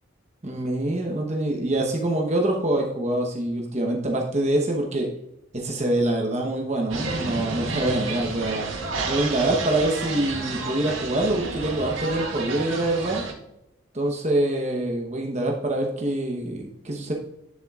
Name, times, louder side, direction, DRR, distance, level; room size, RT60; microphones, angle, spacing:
voice 1, 0.4-5.1 5.5-8.7 9.0-13.2 13.9-17.1, right 1 dB, 35° right, 0 dB, 1.0 m, -25 dB
sound 1, 6.9-13.3, right 3 dB, 75° right, 2.1 m, -31 dB
9.7 x 7.2 x 2.4 m, 0.83 s
head